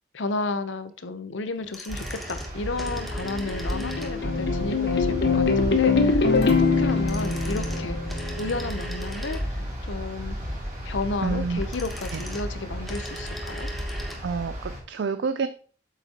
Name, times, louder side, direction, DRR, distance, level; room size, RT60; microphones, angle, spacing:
voice 1, 0.1-8.0 8.4-10.4 10.8-13.7, left 3 dB, 90° left, 0.8 m, -32 dB
sound 1, 1.6-4.4 6.8-9.8 11.4-14.3 14.5-14.6, right 1 dB, ahead, 1.0 m, -40 dB
sound 2, 1.9-14.8, equal, 35° right, 4.0 m, -33 dB
sound 3, 3.2-8.6, left 4 dB, 65° left, 1.0 m, -23 dB
voice 2, 11.2-11.6 12.1-12.2 14.2-15.5, right 5 dB, 70° right, 0.4 m, -28 dB
8.1 x 7.1 x 2.9 m
head